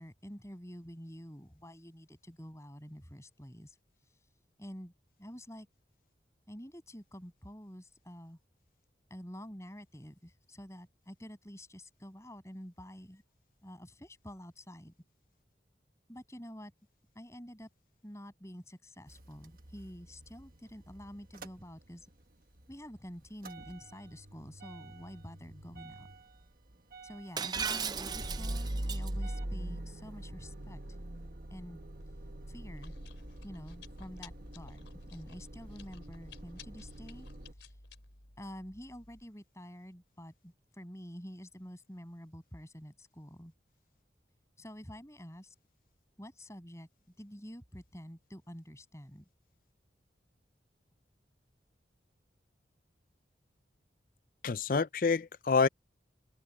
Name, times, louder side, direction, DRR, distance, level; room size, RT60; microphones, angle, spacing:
voice 1, 0.0-3.8 4.6-4.9 5.2-5.7 6.5-8.4 9.1-13.2 13.6-14.9 16.1-16.7 17.1-17.7 18.0-22.1 22.7-26.1 27.0-30.8 31.5-31.8 32.5-32.9 33.4-37.3 37.6-37.7 38.4-43.5 44.6-45.5 46.2-46.9 47.2-49.3, equal, 15° left, 7.6 m, -48 dB
Motor vehicle (road) / Engine starting / Idling, 19.1-22.2 22.6-37.5, right 1 dB, 50° right, 1.4 m, -43 dB
Shatter, 27.4-29.1, right 6 dB, 20° right, 0.5 m, -36 dB
Chewing mastication, 32.0-39.2, left 3 dB, 85° left, 3.8 m, -54 dB
voice 2, 54.4-55.7, left 4 dB, 50° left, 0.5 m, -27 dB
head